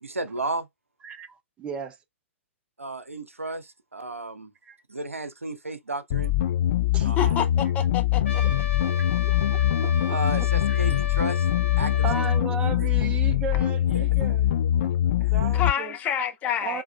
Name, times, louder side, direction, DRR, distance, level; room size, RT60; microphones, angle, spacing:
voice 1, 0.0-0.7 2.8-4.5 4.9-6.3 7.0-7.4 10.1-11.5 11.8-12.1 12.8-12.9 13.9-14.1 15.2-15.6, right 2 dB, 80° right, 0.7 m, -33 dB
voice 2, 1.6-1.9 4.7-4.8 6.9-7.4 9.0-10.8 12.0-14.5 14.8-14.9 15.3-16.0 16.6-16.8, right 7 dB, 15° right, 0.5 m, -36 dB
sound 1, 6.1-15.7, left 12 dB, 45° left, 0.4 m, -23 dB
voice 3, 7.0-8.4 15.5-16.8, left 8 dB, 20° left, 0.8 m, -28 dB
Trumpet, 8.2-12.4, left 4 dB, 65° left, 2.5 m, -35 dB
4.6 x 3.4 x 2.3 m
figure-of-eight pair, 115°, 7 cm